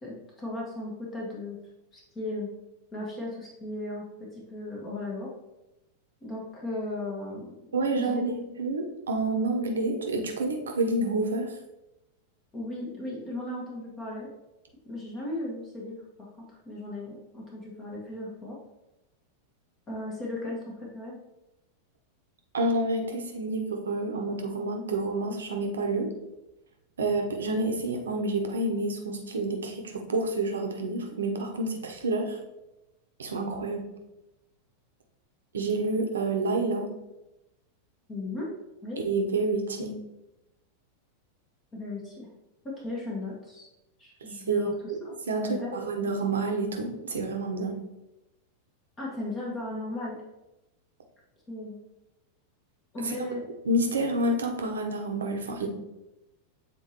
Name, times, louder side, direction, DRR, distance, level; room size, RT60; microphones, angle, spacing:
voice 1, 0.0-1.6 1.9-2.5 2.9-4.0 4.3-5.3 6.2-7.5 8.0-8.3 12.5-14.3 14.8-16.0 16.4-18.6 19.9-21.2 38.1-38.5 38.8-39.0 41.7-42.3 42.6-43.7 44.0-45.8 49.0-50.2 51.5-51.8 52.9-53.4, left 2 dB, 25° left, -4 dB, 1.5 m, -36 dB
voice 2, 7.7-8.3 8.6-11.5 22.5-26.1 27.0-32.4 33.2-33.8 35.5-36.9 39.0-40.0 44.5-47.8 53.0-53.1 53.6-55.7, right 2 dB, 65° right, 3 dB, 0.9 m, -28 dB
7.7 x 4.1 x 2.9 m, 0.96 s
figure-of-eight pair, 90°, 0 cm